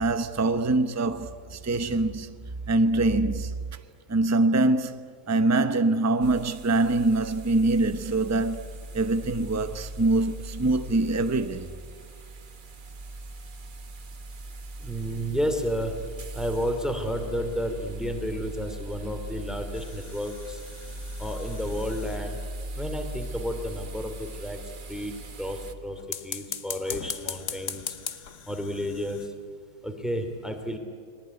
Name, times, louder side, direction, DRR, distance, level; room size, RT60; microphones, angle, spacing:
voice 1, 0.0-2.4 2.7-3.5 4.1-11.7, right 2 dB, 15° right, 0.5 m, -24 dB
sound 1, 6.2-25.7, right 1 dB, 35° right, 1.2 m, -39 dB
voice 2, 14.8-15.9 16.3-20.6 21.2-22.4 22.8-24.6 24.9-25.1 25.4-27.9 28.5-29.3 29.8-30.8, equal, ahead, 2.8 m, -31 dB
sound 2, 19.7-22.6 26.0-29.3, left 7 dB, 50° left, 1.3 m, -39 dB
30.0 x 20.5 x 9.6 m
omnidirectional pair, 1.8 m